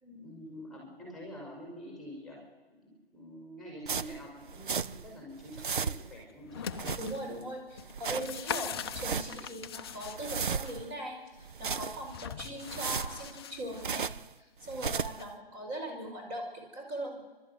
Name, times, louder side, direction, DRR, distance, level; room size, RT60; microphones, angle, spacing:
voice 1, 0.2-6.6, equal, ahead, -1 dB, 5.3 m, -47 dB
sound 1, 3.9-5.1 5.4-6.2 6.6-7.4 7.8-8.4 8.8-9.5 9.9-10.9 11.4-12.2 12.6-14.3 14.6-15.3, right 6 dB, 60° right, 0.9 m, -36 dB
sound 2, 6.3-7.2 7.8-10.7 12.1-13.8 15.2-15.3, left 7 dB, 25° left, 0.7 m, -41 dB
voice 2, 7.0-14.1 14.4-17.2, right 1 dB, 20° right, 0 dB, 5.4 m, -40 dB
28.5 x 13.0 x 9.4 m, 1.3 s
figure-of-eight pair, 145°, 29 cm